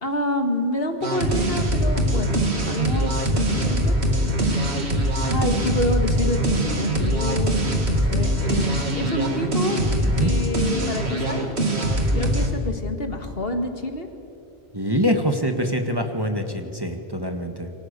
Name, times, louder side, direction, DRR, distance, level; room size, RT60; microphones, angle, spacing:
voice 1, 0.0-2.4 2.7-4.0 5.2-9.9 10.2-11.6 12.2-14.1, left 2 dB, 65° left, 5 dB, 2.3 m, -28 dB
sound 1, 1.0-12.5, right 1 dB, 85° right, 2.6 m, -22 dB
voice 2, 14.7-17.7, equal, 20° right, 5 dB, 1.7 m, -25 dB
28.0 x 24.0 x 6.8 m, 2.9 s
omnidirectional pair, 1.1 m